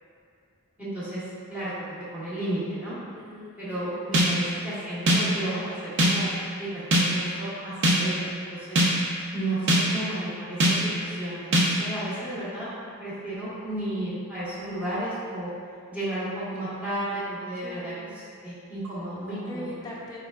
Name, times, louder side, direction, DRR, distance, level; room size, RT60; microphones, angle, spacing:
voice 1, 0.8-1.2 1.5-2.9 3.6-6.3 6.6-6.8 7.1-8.8 9.3-12.7 13.0-15.5 15.9-19.7, right 1 dB, 10° right, -12 dB, 1.4 m, -33 dB
voice 2, 3.2-4.4 17.6-18.1 19.5-20.2, equal, 20° left, -5 dB, 0.6 m, -41 dB
sound 1, 4.1-4.5 5.1-5.4 6.0-6.3 6.9-7.3 7.8-8.2 8.8-9.1 9.7-10.0 10.6-11.0 11.5-11.9, equal, 60° right, 0.6 m, -22 dB
4.1 x 3.6 x 2.4 m, 2.3 s
head